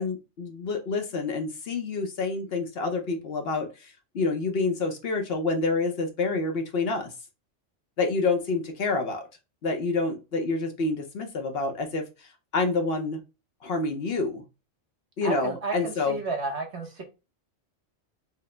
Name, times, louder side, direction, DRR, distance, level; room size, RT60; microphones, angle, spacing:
voice 1, 0.0-3.9 4.1-7.1 8.0-9.2 9.6-12.1 12.5-13.2 13.6-14.4 15.2-16.2, left 3 dB, 60° left, 0.9 m, -28 dB
voice 2, 15.2-17.0, right 3 dB, 65° right, 1.2 m, -32 dB
4.7 x 2.0 x 3.2 m
omnidirectional pair, 1.2 m